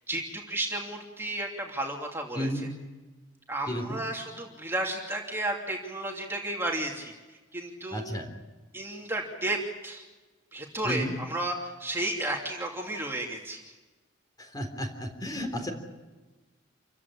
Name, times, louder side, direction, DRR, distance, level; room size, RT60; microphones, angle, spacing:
voice 1, 0.1-2.5 3.5-8.0 8.7-10.0 10.5-13.7, right 1 dB, 10° right, 0 dB, 2.9 m, -33 dB
voice 2, 3.7-4.0 7.9-8.3 10.8-11.2 14.4-15.7, equal, 20° left, 5 dB, 3.6 m, -32 dB
28.0 x 16.0 x 9.9 m, 1.2 s
head